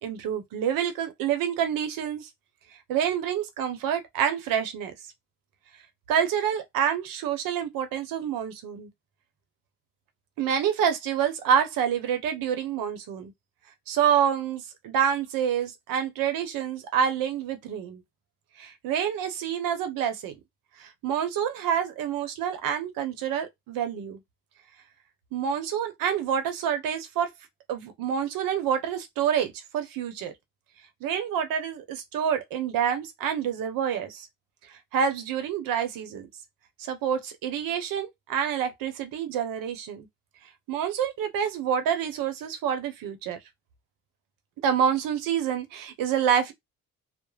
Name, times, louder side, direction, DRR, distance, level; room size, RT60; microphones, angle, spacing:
voice 1, 0.0-2.3 2.9-4.9 6.1-8.9 10.4-13.3 13.9-18.0 18.6-20.4 20.8-24.2 25.3-27.3 27.7-30.3 31.0-34.3 34.9-36.3 36.8-40.1 40.7-43.4 44.6-46.5, right 8 dB, 80° right, 0.7 m, -27 dB
2.3 x 2.0 x 3.1 m
cardioid pair, 95°, 34 cm